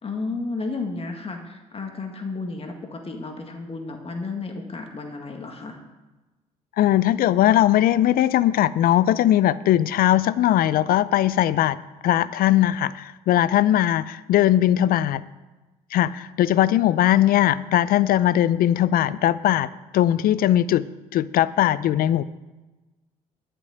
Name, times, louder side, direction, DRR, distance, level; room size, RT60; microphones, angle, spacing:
voice 1, 0.0-5.8, left 3 dB, 35° left, 3 dB, 1.9 m, -32 dB
voice 2, 6.8-11.8 12.0-15.2 15.9-19.7 19.9-20.9 21.1-22.2, left 12 dB, 60° left, 18 dB, 0.5 m, -19 dB
12.0 x 6.1 x 7.8 m, 1.1 s
hypercardioid pair, 55°, 17 cm